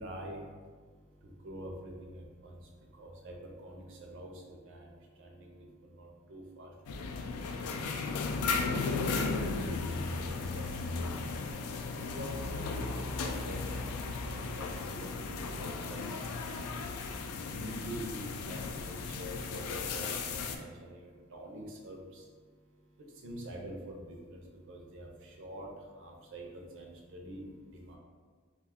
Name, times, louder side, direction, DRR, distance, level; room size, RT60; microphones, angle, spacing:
voice 1, 0.0-28.0, right 1 dB, 60° right, 1 dB, 0.5 m, -47 dB
sound 1, 6.9-20.6, left 4 dB, 85° left, 0.3 m, -35 dB
2.4 x 2.3 x 3.5 m, 1.5 s
head